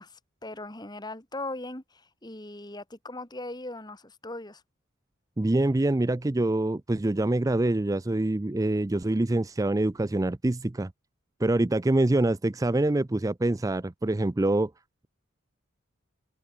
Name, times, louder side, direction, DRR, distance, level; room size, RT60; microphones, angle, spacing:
voice 1, 0.0-4.6, left 2 dB, 20° left, 2.7 m, -39 dB
voice 2, 5.4-10.9 11.4-14.7, right 2 dB, 15° right, 0.4 m, -25 dB
head